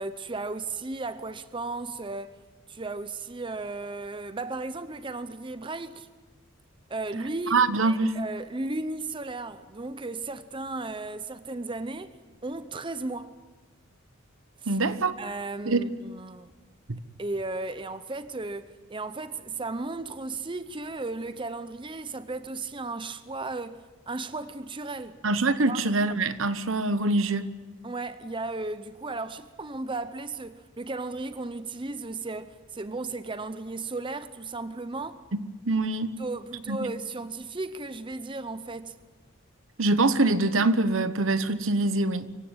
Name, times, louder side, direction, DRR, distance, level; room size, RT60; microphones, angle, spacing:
voice 1, 0.0-2.4 2.7-6.1 6.9-12.2 12.4-13.3 14.6-14.8 15.2-16.5 17.2-25.2 25.7-25.8 27.8-35.2 36.2-39.0, right 3 dB, 25° right, 0.7 m, -35 dB
voice 2, 7.5-8.2 14.7-15.2 15.7-15.8 16.9-17.0 25.2-27.5 35.3-36.1 36.7-36.8 39.8-42.4, right 2 dB, 75° right, 1.1 m, -24 dB
24.0 x 16.5 x 9.6 m
head